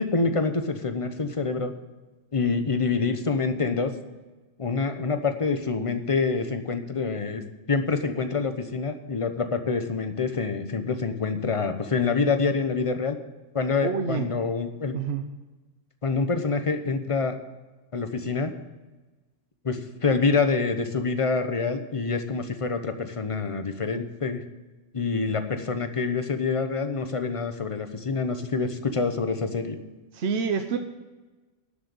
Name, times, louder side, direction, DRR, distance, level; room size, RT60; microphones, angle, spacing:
voice 1, 0.0-1.7 2.3-4.0 4.6-7.4 7.7-13.2 13.5-15.0 16.0-17.4 17.9-18.5 19.6-24.4 24.9-29.8, left 4 dB, 30° left, 8 dB, 0.9 m, -26 dB
voice 2, 13.8-14.3 14.9-15.2 30.1-30.8, right 6 dB, 60° right, 6 dB, 1.1 m, -27 dB
11.5 x 6.7 x 9.0 m, 1.2 s
omnidirectional pair, 1.3 m